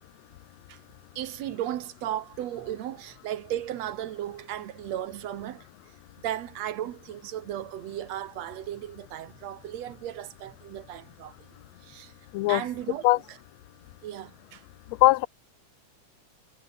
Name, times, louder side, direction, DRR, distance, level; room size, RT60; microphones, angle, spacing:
voice 1, 1.2-5.7 6.2-11.3 11.8-12.1 12.5-13.0 14.0-14.6, right 12 dB, 65° right, 2.1 m, -35 dB
voice 2, 12.3-12.6 13.0-13.2 15.0-15.3, left 19 dB, 75° left, 1.8 m, -19 dB
omnidirectional pair, 3.5 m